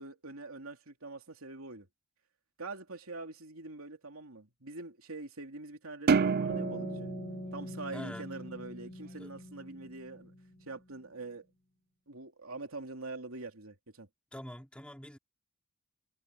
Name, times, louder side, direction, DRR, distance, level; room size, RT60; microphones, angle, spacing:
voice 1, 0.0-1.9 2.6-7.1 7.5-10.3 10.7-11.5 12.1-14.1, right 3 dB, 85° right, 3.0 m, -44 dB
sound 1, 6.1-8.6, right 5 dB, 45° right, 0.4 m, -30 dB
sound 2, 6.5-10.7, left 1 dB, 30° left, 2.5 m, -44 dB
voice 2, 7.9-8.3 9.2-9.3 14.3-15.2, equal, 5° left, 3.7 m, -44 dB
head